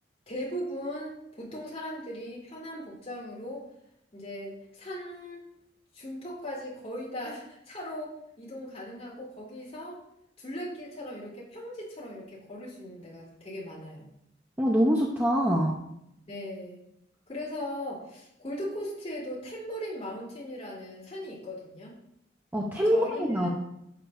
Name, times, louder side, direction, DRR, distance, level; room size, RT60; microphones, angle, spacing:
voice 1, 0.3-3.7 4.1-5.5 5.9-10.0 10.4-14.1 16.3-16.8 17.3-21.9 22.8-23.5, equal, 35° left, -6 dB, 3.3 m, -38 dB
voice 2, 14.6-15.7 22.5-23.5, equal, 10° right, -2 dB, 0.7 m, -24 dB
11.0 x 6.7 x 2.6 m, 0.79 s
head